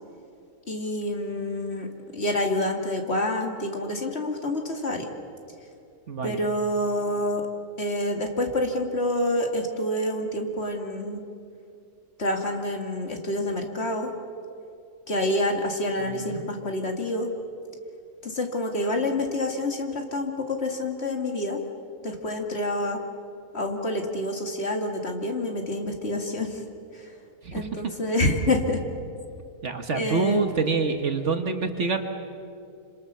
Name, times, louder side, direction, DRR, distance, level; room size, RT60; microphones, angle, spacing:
voice 1, 0.7-1.9 2.1-5.1 6.2-7.4 7.8-11.2 12.2-14.1 15.1-17.3 18.2-21.6 22.0-23.0 23.5-26.6 26.9-27.1 27.5-28.8 29.9-30.4, left 1 dB, 45° left, 2 dB, 2.6 m, -27 dB
voice 2, 6.1-6.4 16.0-16.5 27.4-27.8 29.6-32.0, right 4 dB, 55° right, 7 dB, 1.6 m, -26 dB
27.0 x 26.5 x 6.9 m, 2.6 s
omnidirectional pair, 1.6 m